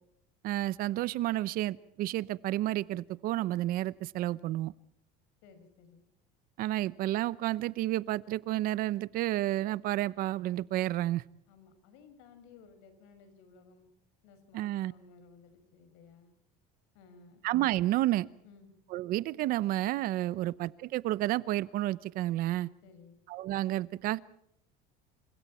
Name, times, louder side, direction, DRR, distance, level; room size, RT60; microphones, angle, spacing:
voice 1, 0.4-4.7 6.6-11.2 14.5-14.9 17.4-18.3 18.9-22.7 23.3-24.2, right 15 dB, 50° right, 0.8 m, -31 dB
voice 2, 5.4-6.1 11.5-13.9 14.2-16.3 16.9-17.4 18.4-18.7 20.3-20.5 22.8-23.2, left 5 dB, 75° left, 5.9 m, -57 dB
29.0 x 26.0 x 4.3 m
cardioid pair, 145°, 18 cm